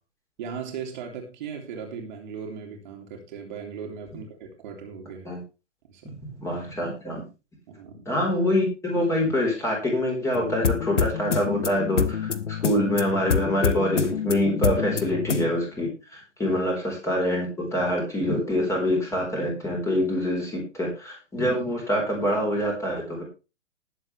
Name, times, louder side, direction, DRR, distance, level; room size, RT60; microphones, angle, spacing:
voice 1, 0.4-5.3 5.9-6.2 7.7-8.0 16.5-16.6, right 6 dB, 40° right, 1 dB, 2.8 m, -38 dB
voice 2, 6.0-7.2 8.1-12.3 12.6-23.2, left 1 dB, 10° left, -1 dB, 4.1 m, -25 dB
sound 1, 10.3-15.5, left 6 dB, 70° left, 1.2 m, -27 dB
19.5 x 7.4 x 3.3 m, 0.30 s
figure-of-eight pair, 125°, 37 cm